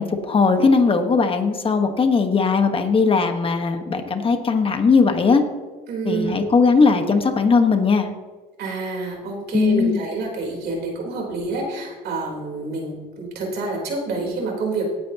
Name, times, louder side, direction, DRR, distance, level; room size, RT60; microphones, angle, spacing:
voice 1, 0.0-5.4 6.0-8.1 9.5-10.0, left 4 dB, 35° left, 6 dB, 1.3 m, -18 dB
voice 2, 5.9-6.4 8.6-14.9, right 3 dB, 70° right, 0 dB, 3.8 m, -27 dB
17.5 x 9.5 x 2.9 m, 1.4 s
cardioid pair, 110°, 17 cm